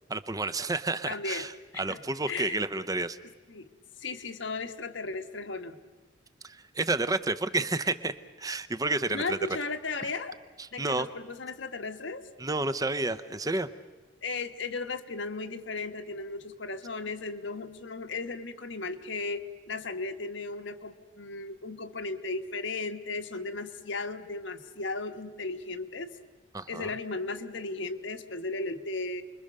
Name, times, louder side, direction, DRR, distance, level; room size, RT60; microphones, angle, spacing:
voice 1, 0.1-3.2 6.4-9.4 10.6-11.1 12.4-13.7 26.5-26.9, right 2 dB, 20° right, 13 dB, 0.7 m, -30 dB
voice 2, 1.1-1.5 1.7-2.0 2.3-2.6 3.5-3.7 4.0-5.8 9.1-10.4 10.7-12.2 14.2-26.1 26.7-29.2, left 3 dB, 70° left, 8 dB, 1.4 m, -35 dB
29.5 x 22.0 x 6.7 m, 1.3 s
head